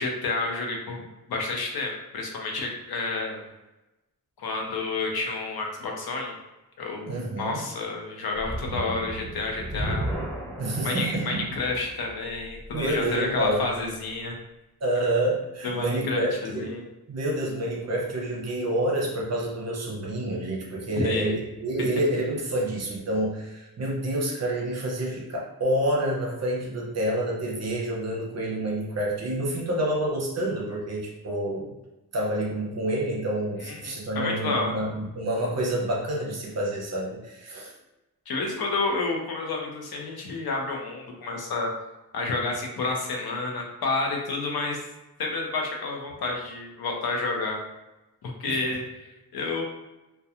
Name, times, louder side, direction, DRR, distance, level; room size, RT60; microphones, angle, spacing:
voice 1, 0.0-3.5 4.4-6.3 6.8-10.1 10.8-14.3 15.6-16.9 21.0-21.4 33.6-34.8 38.3-41.7 42.1-44.8 45.2-47.6 48.2-49.6, left 3 dB, 75° left, 0 dB, 0.6 m, -30 dB
voice 2, 7.1-7.6 10.6-11.4 12.7-13.6 14.8-16.7 17.1-31.7 32.1-37.7 48.5-48.6, right 1 dB, 45° right, -3 dB, 0.6 m, -28 dB
sound 1, 8.3-13.6, right 1 dB, 5° left, 0.4 m, -35 dB
2.3 x 2.2 x 2.7 m, 1.0 s
wide cardioid pair, 175°, 37 cm